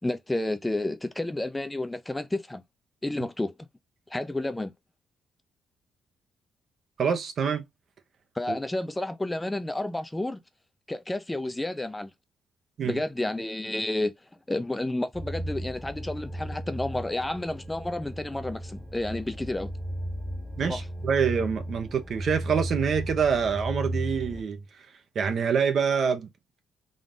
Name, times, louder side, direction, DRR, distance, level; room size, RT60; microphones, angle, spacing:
voice 1, 0.0-2.6 3.0-3.5 4.1-4.7 8.4-10.4 10.9-12.1 12.8-14.1 14.5-19.7 20.6-20.8, left 1 dB, 10° left, 0.5 m, -30 dB
voice 2, 7.0-7.6 8.5-8.6 12.8-13.0 20.6-24.6 25.1-26.3, right 6 dB, 55° right, 0.9 m, -26 dB
sound 1, 15.1-24.4, right 1 dB, 5° right, 1.1 m, -35 dB
3.8 x 2.5 x 3.7 m
cardioid pair, 90°, 0 cm